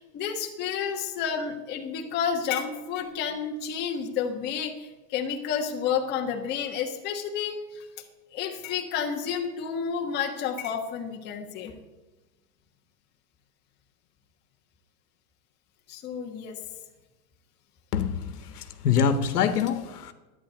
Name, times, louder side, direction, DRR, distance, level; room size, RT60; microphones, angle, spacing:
voice 1, 0.0-7.8 8.3-11.7 15.9-16.6, left 7 dB, 20° left, 2 dB, 1.4 m, -30 dB
voice 2, 17.9-18.3 18.6-20.1, left 7 dB, 85° left, 10 dB, 1.6 m, -25 dB
11.0 x 10.0 x 8.4 m, 1.1 s
supercardioid pair, 160°, 45 cm